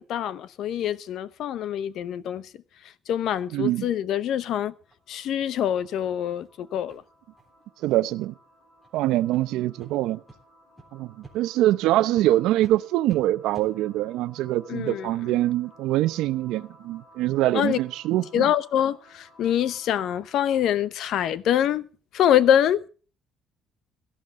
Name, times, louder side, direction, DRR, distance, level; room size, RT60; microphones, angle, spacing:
voice 1, 0.0-2.5 3.1-4.7 5.1-7.0 14.7-15.1 17.5-17.8 18.3-21.9 22.1-22.8, left 10 dB, 60° left, 0.8 m, -25 dB
sound 1, 3.4-3.5 3.9-4.0 4.4-4.5 4.9-5.0 5.4-5.5 5.9-6.0 6.4-6.5 6.9-7.0 7.4-7.5 7.9-8.2 8.8-8.9 9.3-9.4 9.8-9.9 10.3-10.4 10.8-10.9 11.2-11.4 11.7-11.8 12.2-12.3 12.6-12.7 13.1-13.2 13.5-13.7, right 2 dB, ahead, 3.6 m, -50 dB
voice 2, 3.5-3.9 7.8-8.3 8.9-10.2 10.9-18.5, right 15 dB, 90° right, 0.7 m, -24 dB
sound 2, 4.3-20.9, equal, 35° left, 6.0 m, -56 dB
17.5 x 12.5 x 3.7 m
cardioid pair, 150°, 0 cm